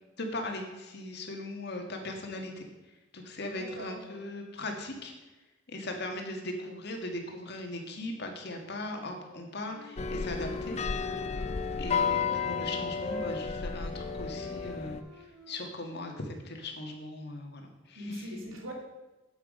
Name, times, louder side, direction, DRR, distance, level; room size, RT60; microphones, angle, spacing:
voice 1, 0.2-2.7 3.1-5.1 5.7-10.8 11.8-18.3, left 2 dB, 55° left, 3 dB, 1.7 m, -39 dB
voice 2, 3.5-4.2 17.9-18.7, equal, 85° right, 1 dB, 2.4 m, -41 dB
Wind instrument woodwind instrument, 9.2-12.5 12.9-16.8, left 3 dB, 5° right, 4.0 m, -46 dB
sound 1, 10.0-15.0, left 5 dB, 35° left, 0.4 m, -32 dB
8.7 x 8.3 x 5.3 m, 1.1 s
head